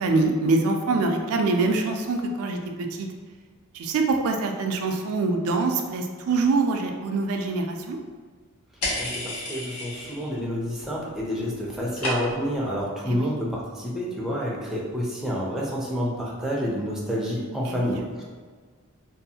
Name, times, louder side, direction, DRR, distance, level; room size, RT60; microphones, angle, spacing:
voice 1, 0.0-3.1 3.7-8.0 13.1-13.3 17.6-18.0, right 3 dB, 70° right, 4 dB, 0.3 m, -24 dB
sound 1, 8.8-10.4 10.7-11.2 11.5-12.6, left 1 dB, 80° left, 0.8 m, -32 dB
voice 2, 9.0-18.2, equal, ahead, -5 dB, 0.4 m, -29 dB
2.6 x 2.4 x 2.7 m, 1.5 s
head